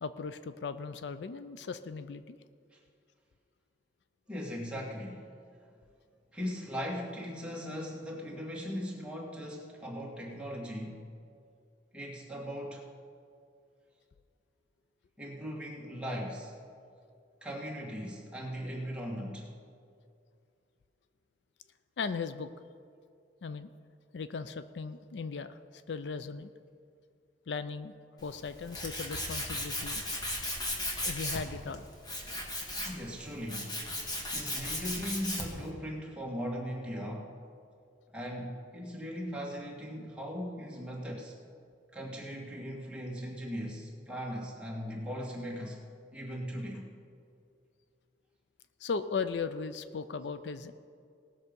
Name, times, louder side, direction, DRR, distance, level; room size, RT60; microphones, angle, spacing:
voice 1, 0.0-2.4 22.0-22.5 23.4-23.7 24.1-26.5 27.5-27.9 28.2-30.0 31.0-31.8 48.8-50.7, left 5 dB, 75° left, 12 dB, 0.5 m, -37 dB
voice 2, 4.3-5.3 6.3-11.0 11.9-12.8 15.2-16.5 17.4-19.5 32.9-33.7 34.3-37.3 38.1-41.4 41.9-45.8 46.1-46.9, equal, 5° right, -3 dB, 1.9 m, -39 dB
Tools, 28.2-35.7, left 1 dB, 25° left, 1.7 m, -36 dB
18.5 x 6.7 x 5.3 m, 2.4 s
head